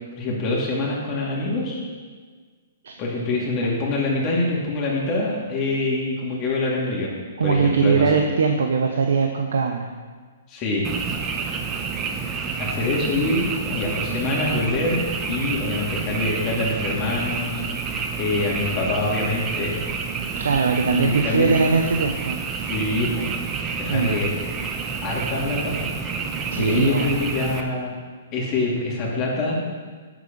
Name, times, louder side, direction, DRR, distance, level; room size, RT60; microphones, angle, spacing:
voice 1, 0.2-1.8 3.0-7.1 7.4-8.2 10.5-10.9 12.6-15.0 15.3-17.6 18.1-19.8 20.8-21.6 22.6-23.3 23.7-24.3 25.0-25.9 26.6-27.9 28.3-29.6, left 2 dB, 30° left, -4 dB, 2.7 m, -25 dB
voice 2, 7.4-9.9 20.4-22.4 23.9-24.2 26.5-27.1, right 5 dB, 80° right, 4 dB, 0.8 m, -21 dB
Frog, 10.8-27.6, right 5 dB, 20° right, 0.9 m, -29 dB
9.3 x 8.0 x 5.3 m, 1.5 s
hypercardioid pair, 135°, 0 cm